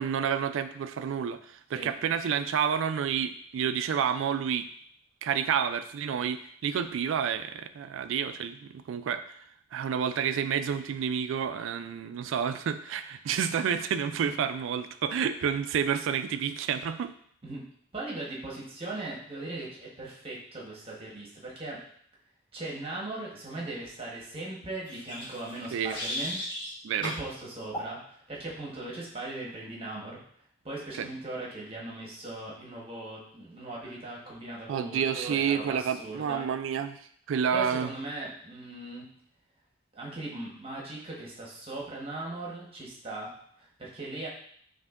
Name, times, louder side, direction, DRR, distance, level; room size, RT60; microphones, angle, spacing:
voice 1, 0.0-4.7 5.2-9.4 9.7-17.1 25.7-25.9 26.8-27.1 31.0-31.1 34.7-37.0 37.3-37.9, right 7 dB, 80° right, 11 dB, 0.3 m, -29 dB
voice 2, 17.9-21.8 22.5-26.4 27.0-30.2 30.6-36.4 37.5-39.1 39.9-44.3, right 2 dB, 30° right, -4 dB, 1.1 m, -39 dB
sound 1, 24.8-26.7 27.0-27.2 27.7-27.9, equal, 25° left, 1.4 m, -36 dB
5.6 x 2.7 x 2.4 m, 0.63 s
head